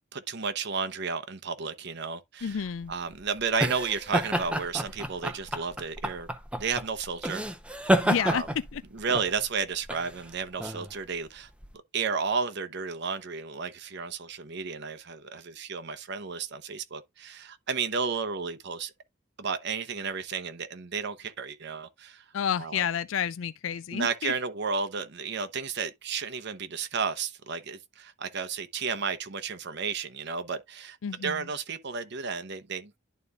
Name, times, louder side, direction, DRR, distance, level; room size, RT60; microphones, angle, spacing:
voice 1, 0.1-6.3 6.6-7.4 8.2-8.5 8.9-11.5 11.9-18.9 19.4-22.2 22.6-22.8 23.9-31.0 31.2-32.9, right 5 dB, 60° right, 0.8 m, -32 dB
voice 2, 2.4-2.9 8.0-8.4 8.7-8.8 22.3-24.3 31.0-31.4, left 8 dB, 75° left, 0.4 m, -30 dB
sound 1, 2.5-11.7, equal, 5° right, 0.7 m, -30 dB
11.5 x 4.1 x 2.4 m
head